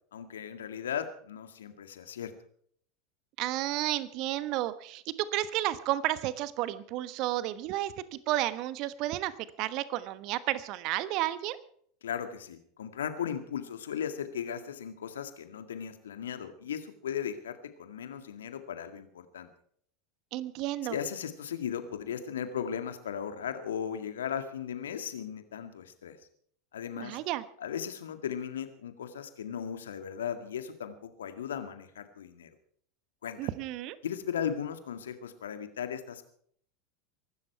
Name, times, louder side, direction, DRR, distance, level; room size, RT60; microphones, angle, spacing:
voice 1, 0.1-2.3 12.0-19.5 20.9-26.2 26.7-27.2 27.6-32.5 33.2-33.4 34.0-36.3, left 8 dB, 70° left, 9 dB, 2.0 m, -37 dB
voice 2, 3.4-9.3 9.6-11.6 20.3-21.0 27.0-27.4 33.4-34.0, right 15 dB, 50° right, 15 dB, 1.1 m, -32 dB
23.5 x 12.5 x 4.6 m, 0.62 s
figure-of-eight pair, 80°, 0 cm